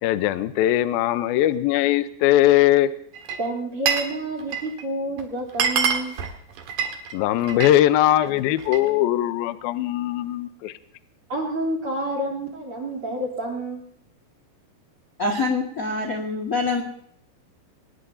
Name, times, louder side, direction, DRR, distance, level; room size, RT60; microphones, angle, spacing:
voice 1, 0.0-2.9 7.1-10.7, left 13 dB, 80° left, 11 dB, 2.2 m, -20 dB
Glass, 3.1-4.1 4.4-4.8 5.2-5.3 5.5-7.8 8.1-8.9, right 7 dB, 55° right, 2.8 m, -26 dB
voice 2, 3.4-6.2 11.3-13.9, right 1 dB, 35° right, -1 dB, 3.7 m, -29 dB
voice 3, 15.2-16.8, left 3 dB, 60° left, 2 dB, 0.8 m, -25 dB
21.5 x 19.5 x 2.8 m, 0.68 s
omnidirectional pair, 5.1 m